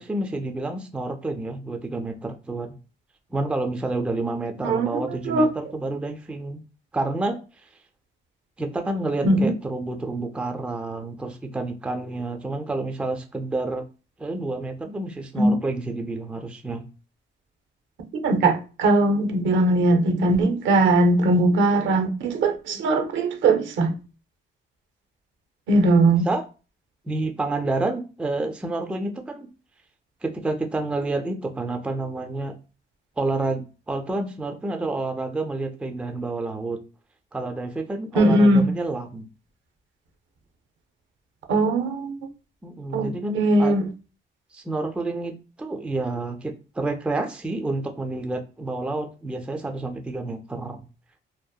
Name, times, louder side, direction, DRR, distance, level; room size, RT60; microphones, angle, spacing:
voice 1, 0.0-2.8 3.3-6.6 6.9-7.4 8.6-13.8 14.2-16.8 26.3-26.4 27.1-29.5 30.2-32.5 33.2-36.8 37.3-39.3 42.6-43.8 44.5-50.8, right 2 dB, 5° right, 0.3 m, -29 dB
voice 2, 4.6-5.5 9.2-9.5 15.4-15.6 18.1-24.0 25.7-26.3 38.2-38.7 41.5-42.2 42.9-43.9, right 2 dB, 70° right, 0.6 m, -20 dB
2.7 x 2.0 x 2.2 m
cardioid pair, 90°, 20 cm